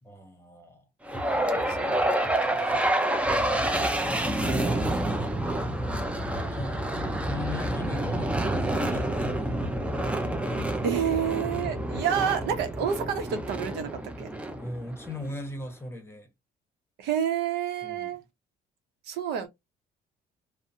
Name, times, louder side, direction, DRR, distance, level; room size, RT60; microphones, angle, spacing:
voice 1, 0.0-0.9 2.5-3.2 5.7-9.6 10.5-10.8 14.6-16.3 17.8-18.2, left 2 dB, 15° left, 0.9 m, -40 dB
sound 1, 1.1-15.2, right 1 dB, 5° right, 0.4 m, -28 dB
voice 2, 1.5-2.2 2.4-2.5 3.7-4.0 4.3-4.9 10.8-13.9 14.2-14.3 17.0-18.2 19.1-19.5, right 8 dB, 80° right, 0.7 m, -29 dB
2.7 x 2.1 x 2.5 m
cardioid pair, 110°, 17 cm